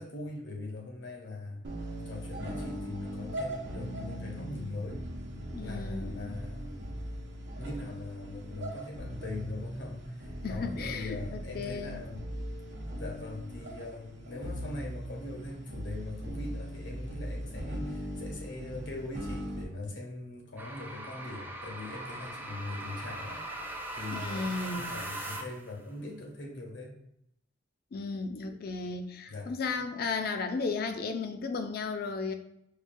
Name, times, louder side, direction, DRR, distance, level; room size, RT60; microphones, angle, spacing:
voice 1, 0.0-1.6 1.9-5.1 5.6-7.0 7.6-12.2 12.9-23.5 23.9-27.0 29.3-29.5, left 2 dB, 75° left, 0 dB, 0.9 m, -41 dB
sound 1, 1.6-19.6, equal, 65° right, 0.7 m, -39 dB
voice 2, 5.5-6.3 10.4-12.0 24.1-25.0 27.9-32.3, left 4 dB, 55° left, 7 dB, 0.4 m, -34 dB
sound 2, 20.6-25.7, right 1 dB, 10° right, 0.4 m, -40 dB
4.8 x 2.2 x 2.6 m, 0.76 s
head